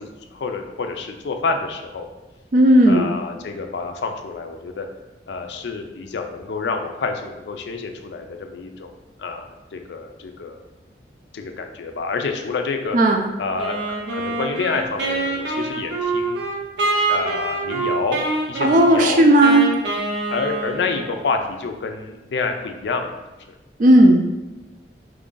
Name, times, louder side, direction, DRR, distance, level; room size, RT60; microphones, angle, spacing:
voice 1, 0.0-2.1 2.9-4.9 5.3-8.9 9.2-10.7 11.3-13.0 13.4-16.4 17.0-18.2 18.5-19.2 20.3-23.2, left 4 dB, 75° left, 5 dB, 0.4 m, -28 dB
voice 2, 2.5-3.1 12.9-13.2 18.6-19.7 23.8-24.2, right 1 dB, 45° right, 4 dB, 0.4 m, -13 dB
Wind instrument woodwind instrument, 13.6-21.3, right 3 dB, 90° right, 0.8 m, -25 dB
3.1 x 2.5 x 3.7 m, 1.0 s
head